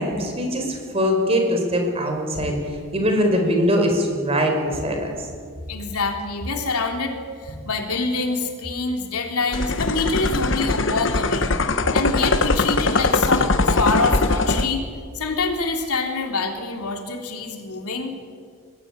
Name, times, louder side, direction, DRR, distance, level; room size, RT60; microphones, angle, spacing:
voice 1, 0.0-2.6 2.9-5.1, equal, 25° right, 3 dB, 4.6 m, -22 dB
voice 2, 5.7-11.5 11.9-14.9 15.1-18.1, left 3 dB, 90° left, 3 dB, 3.4 m, -26 dB
sound 1, 9.5-14.7, left 3 dB, 55° left, 1.1 m, -21 dB
23.5 x 18.5 x 9.7 m, 2.2 s
head